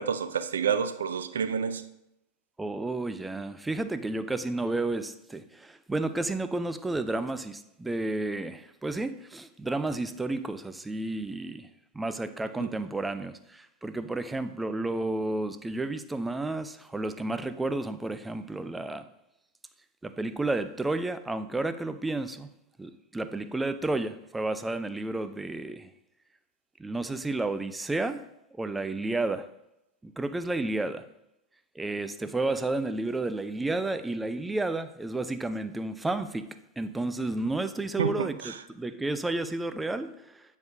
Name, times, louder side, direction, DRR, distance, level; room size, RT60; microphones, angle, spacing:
voice 1, 0.0-1.8 38.0-38.5, right 7 dB, 65° right, 11 dB, 0.5 m, -29 dB
voice 2, 2.6-11.7 11.9-19.0 20.0-22.5 22.8-25.9 26.8-28.2 28.6-29.5 30.0-31.0 31.8-36.4 36.8-40.4, right 2 dB, 10° right, 11 dB, 0.4 m, -31 dB
9.0 x 5.2 x 2.6 m, 0.85 s
figure-of-eight pair, 90°, 0 cm